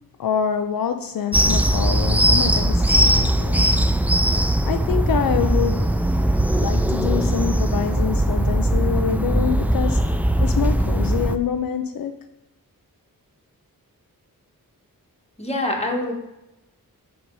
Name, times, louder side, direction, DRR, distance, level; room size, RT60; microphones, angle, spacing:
voice 1, 0.2-3.7 4.6-6.1 6.6-10.0 10.4-12.2, left 8 dB, 70° left, 7 dB, 0.5 m, -26 dB
sound 1, 1.3-11.4, right 1 dB, 5° right, 0.4 m, -19 dB
voice 2, 15.4-16.1, left 1 dB, 15° left, 0 dB, 1.5 m, -25 dB
6.0 x 5.3 x 4.7 m, 0.93 s
wide cardioid pair, 90°, 36 cm